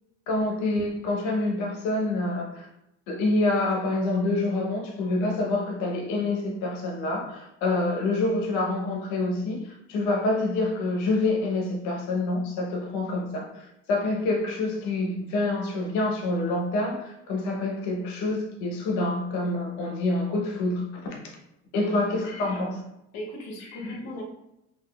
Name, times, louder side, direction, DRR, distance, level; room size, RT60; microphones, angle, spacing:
voice 1, 0.3-2.7 3.1-21.2 21.7-22.8 23.8-24.0, left 2 dB, 80° left, 0 dB, 0.8 m, -27 dB
voice 2, 23.1-24.2, equal, 65° left, -1 dB, 1.1 m, -36 dB
3.9 x 2.4 x 2.3 m, 0.84 s
cardioid pair, 120°, 29 cm